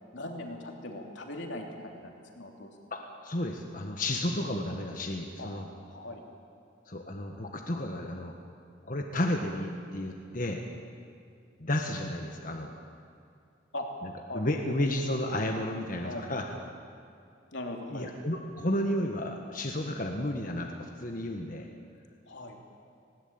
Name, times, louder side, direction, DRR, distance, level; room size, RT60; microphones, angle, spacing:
voice 1, 0.1-2.7 5.4-5.5 5.9-6.2 13.7-13.9 14.2-14.5 16.0-16.4 17.5-18.1 22.3-22.6, left 1 dB, 70° left, 2 dB, 3.1 m, -40 dB
voice 2, 2.9-5.7 6.9-8.3 8.8-10.6 11.6-12.7 14.0-16.4 17.9-21.7, left 1 dB, 45° left, 2 dB, 1.6 m, -32 dB
20.0 x 18.5 x 8.9 m, 2.5 s
head